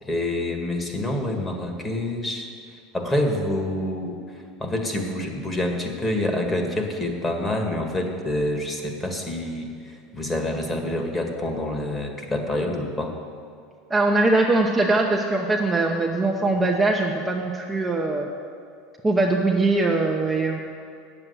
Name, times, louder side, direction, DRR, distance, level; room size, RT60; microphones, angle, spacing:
voice 1, 0.0-2.5 2.9-13.1, left 1 dB, 15° left, 2 dB, 1.8 m, -27 dB
voice 2, 13.9-18.3 19.0-20.6, right 2 dB, 10° right, -1 dB, 0.9 m, -21 dB
8.8 x 7.6 x 8.1 m, 2.3 s
supercardioid pair, 110°, 0 cm